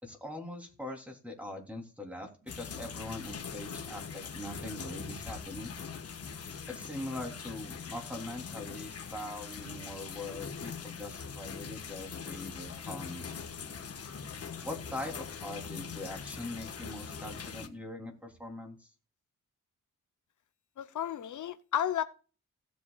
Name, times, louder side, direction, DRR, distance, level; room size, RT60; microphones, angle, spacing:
voice 1, 0.0-5.8 6.7-13.3 14.6-18.9, left 1 dB, 5° right, 3.5 m, -42 dB
sound 1, 2.5-17.7, left 6 dB, 50° left, 1.4 m, -42 dB
voice 2, 20.8-22.0, left 10 dB, 70° left, 0.8 m, -32 dB
17.5 x 8.1 x 2.4 m
wide cardioid pair, 120°, 31 cm